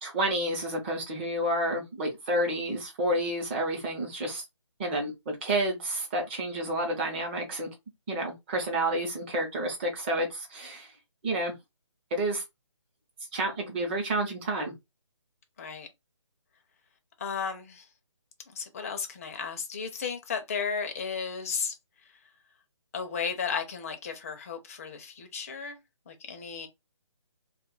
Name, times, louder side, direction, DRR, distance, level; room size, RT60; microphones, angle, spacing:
voice 1, 0.0-4.4 4.8-7.7 8.1-10.9 11.2-11.5 12.1-12.4 13.3-14.7, right 1 dB, 20° right, 0.8 m, -30 dB
voice 2, 17.2-17.8 18.5-21.7 22.9-25.8 26.1-26.7, left 6 dB, 30° left, 0.6 m, -34 dB
2.5 x 2.4 x 3.8 m
hypercardioid pair, 160°, 16 cm